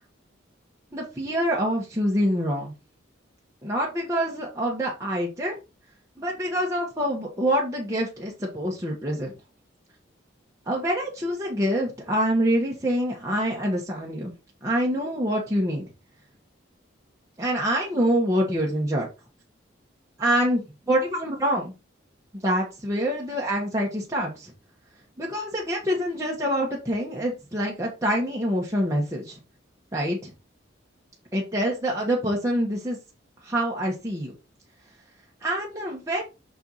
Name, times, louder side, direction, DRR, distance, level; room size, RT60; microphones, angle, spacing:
voice 1, 0.9-2.7 3.6-5.6 6.2-9.3 10.7-14.3 14.6-15.9 17.4-19.1 20.2-21.7 22.3-24.5 25.2-29.4 29.9-30.3 31.3-33.0 33.4-34.3 35.4-36.2, equal, 15° right, -3 dB, 1.1 m, -26 dB
6.1 x 4.5 x 4.0 m, 0.28 s
head